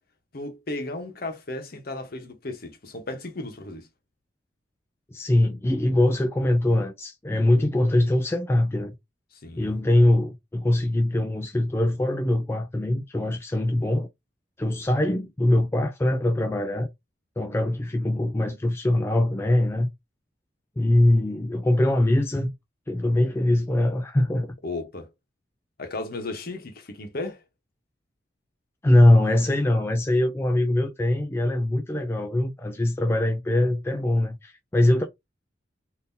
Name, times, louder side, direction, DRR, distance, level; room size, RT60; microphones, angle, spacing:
voice 1, 0.3-3.9 9.4-9.7 24.6-25.1 25.8-27.4, left 2 dB, 55° left, 0.9 m, -34 dB
voice 2, 5.1-8.9 9.6-14.1 14.6-16.9 17.4-19.9 20.8-22.5 22.9-24.5 28.8-35.1, left 1 dB, 15° left, 0.3 m, -22 dB
3.7 x 2.6 x 2.6 m
head